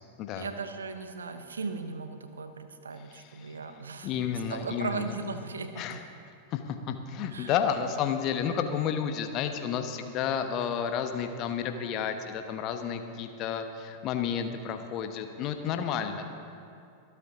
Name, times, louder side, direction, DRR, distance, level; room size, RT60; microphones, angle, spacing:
voice 1, 0.4-4.1 4.5-6.0 7.3-7.6, right 4 dB, 70° right, 9 dB, 0.9 m, -37 dB
voice 2, 3.1-3.6 4.0-5.2 5.8-6.0 6.5-16.3, left 8 dB, 40° left, 7 dB, 1.0 m, -31 dB
25.0 x 8.3 x 3.8 m, 2.5 s
figure-of-eight pair, 90°, 0 cm